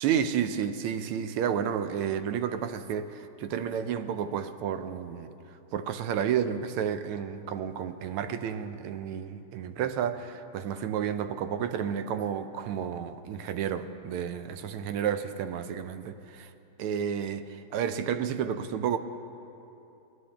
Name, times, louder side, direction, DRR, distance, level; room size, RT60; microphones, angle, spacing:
voice 1, 0.0-5.3 5.7-16.5 16.8-19.0, right 8 dB, 85° right, 10 dB, 1.5 m, -31 dB
19.5 x 11.0 x 3.4 m, 2.9 s
omnidirectional pair, 2.4 m